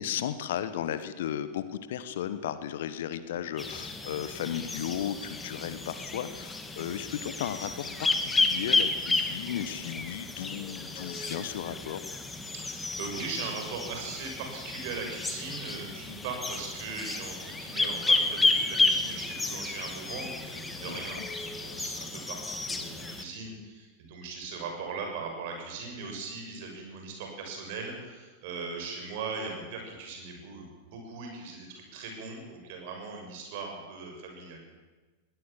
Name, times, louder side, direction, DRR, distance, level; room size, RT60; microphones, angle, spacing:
voice 1, 0.0-12.0 20.9-21.0, left 10 dB, 55° left, 13 dB, 1.3 m, -35 dB
sound 1, 3.6-23.2, left 3 dB, 10° left, 2.0 m, -31 dB
voice 2, 12.5-34.6, right 4 dB, 50° right, 2 dB, 6.7 m, -39 dB
21.5 x 17.0 x 7.4 m, 1.3 s
figure-of-eight pair, 90°, 0 cm